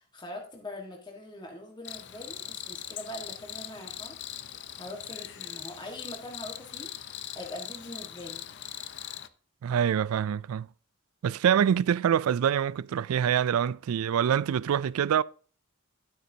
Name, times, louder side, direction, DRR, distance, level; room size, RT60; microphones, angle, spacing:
voice 1, 0.0-4.1 4.8-8.5, left 1 dB, 20° left, 1.6 m, -43 dB
Cricket, 1.8-9.3, left 11 dB, 55° left, 0.7 m, -41 dB
voice 2, 9.6-10.7 11.2-15.2, right 8 dB, 90° right, 0.3 m, -25 dB
12.0 x 8.3 x 2.8 m
head